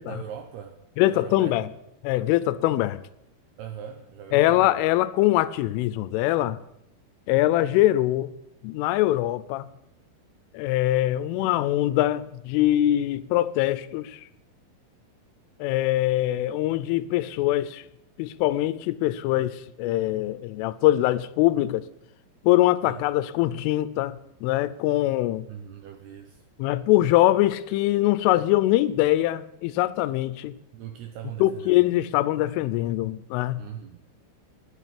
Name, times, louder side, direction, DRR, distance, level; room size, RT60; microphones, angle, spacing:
voice 1, 0.0-1.6 3.6-4.8 22.9-23.0 25.5-26.4 30.7-31.8 33.6-34.1, right 9 dB, 80° right, 2.3 m, -40 dB
voice 2, 1.0-1.7 2.0-3.0 4.3-6.6 7.3-8.3 8.6-9.7 10.5-14.2 15.6-17.8 18.2-21.8 22.4-25.5 26.6-30.5 31.4-33.6, left 15 dB, 85° left, 3.1 m, -23 dB
11.0 x 8.0 x 10.0 m
omnidirectional pair, 5.7 m